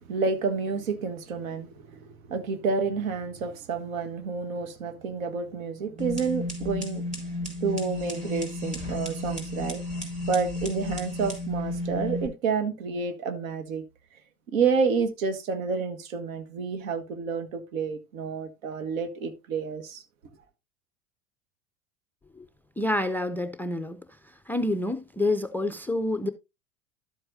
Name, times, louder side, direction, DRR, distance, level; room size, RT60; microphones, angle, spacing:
voice 1, 0.1-2.0 2.3-7.1 7.6-9.8 10.3-13.8 14.5-20.0, right 5 dB, 65° right, 1.7 m, -29 dB
sound 1, 6.0-12.3, left 1 dB, 15° right, 4.5 m, -33 dB
voice 2, 22.8-24.0 24.5-26.3, left 1 dB, 5° left, 0.4 m, -28 dB
12.0 x 7.8 x 2.7 m
figure-of-eight pair, 85°, 43 cm